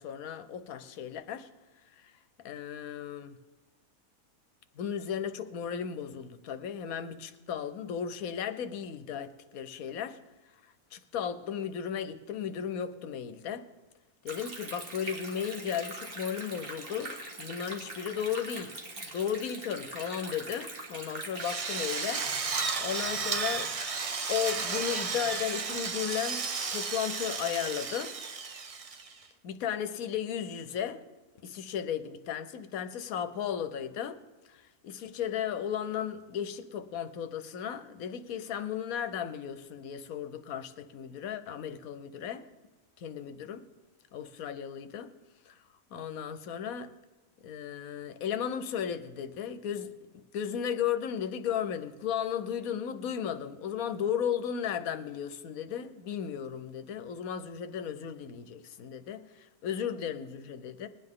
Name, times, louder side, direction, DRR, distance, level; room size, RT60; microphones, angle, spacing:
voice 1, 0.0-1.5 2.0-2.1 2.4-3.4 4.8-10.2 10.9-13.7 14.2-23.7 24.3-28.1 29.4-31.0 31.4-34.2 34.5-42.5 43.0-43.6 44.1-45.1 45.5-45.6 45.9-46.9 47.4-60.9, left 8 dB, 75° left, 1.2 m, -35 dB
Stream, 14.3-22.3, right 2 dB, 40° right, 1.8 m, -42 dB
Drill, 21.4-29.2, right 5 dB, 70° right, 0.3 m, -33 dB
21.0 x 9.8 x 3.7 m
omnidirectional pair, 1.6 m